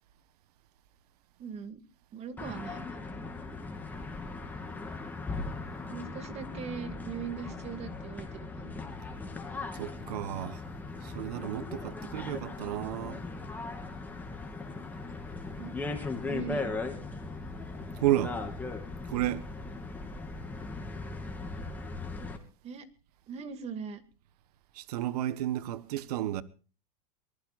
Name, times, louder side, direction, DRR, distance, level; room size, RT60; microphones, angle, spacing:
voice 1, 1.4-1.8 2.1-3.2 5.9-8.8 15.6-15.7 16.3-16.8 22.6-22.9 23.3-24.0, right 7 dB, 30° right, 2.4 m, -40 dB
sound 1, 2.4-22.4, left 3 dB, 10° left, 3.0 m, -38 dB
voice 2, 9.7-10.6 11.0-13.2 18.0-18.4 19.1-19.5 24.7-26.4, right 13 dB, 80° right, 1.3 m, -32 dB
23.5 x 20.0 x 2.5 m
supercardioid pair, 140°, 20 cm